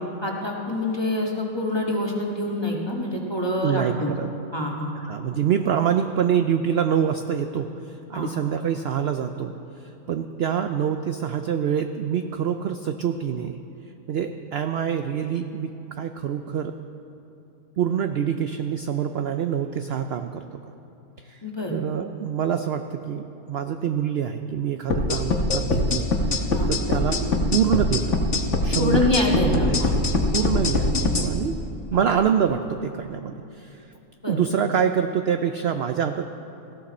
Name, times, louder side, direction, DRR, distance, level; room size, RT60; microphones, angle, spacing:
voice 1, 0.2-4.1 4.5-4.9 8.1-8.3 21.4-21.7 26.5-26.7 28.8-29.9 30.5-30.6 31.9-32.0 34.2-34.4, left 1 dB, 20° left, -1 dB, 1.6 m, -26 dB
voice 2, 3.6-4.3 5.0-13.6 14.1-16.7 17.8-20.6 21.2-21.4 21.7-27.2 27.5-28.2 28.6-29.1 29.4-30.0 30.3-31.5 31.9-33.8 34.3-36.3, right 8 dB, 60° right, 7 dB, 0.6 m, -26 dB
sound 1, 24.9-31.3, left 2 dB, 55° left, 1.5 m, -22 dB
18.5 x 15.5 x 4.3 m, 2.9 s
omnidirectional pair, 1.5 m